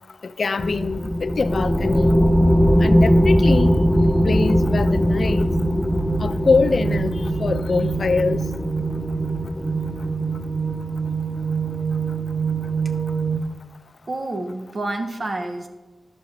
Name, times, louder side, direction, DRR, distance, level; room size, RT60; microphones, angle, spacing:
voice 1, 0.4-2.1 2.8-3.8 4.2-5.5 6.2-8.4, left 4 dB, 60° left, 0.4 m, -23 dB
sound 1, 0.6-10.6, equal, 5° left, 0.5 m, -20 dB
sound 2, 3.6-13.4, right 5 dB, 15° right, 1.1 m, -27 dB
voice 2, 14.1-15.7, right 2 dB, 50° right, 1.1 m, -28 dB
11.0 x 5.9 x 4.9 m
wide cardioid pair, 85°, 0 cm